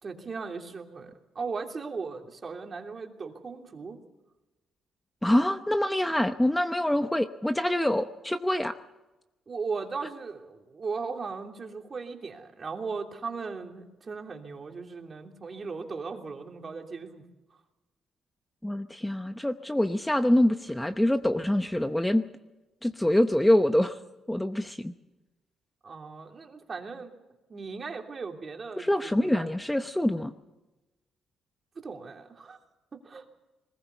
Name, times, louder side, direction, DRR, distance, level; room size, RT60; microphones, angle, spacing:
voice 1, 0.0-4.0 9.5-17.3 25.8-27.1 27.5-29.5 31.7-32.6 32.9-33.2, right 4 dB, 40° right, 3 dB, 3.1 m, -37 dB
voice 2, 5.2-8.8 18.6-22.2 22.8-24.0 24.3-24.9 28.8-30.3, left 1 dB, 5° left, 9 dB, 0.8 m, -25 dB
21.0 x 20.0 x 7.0 m, 1.1 s
cardioid pair, 90°, 0 cm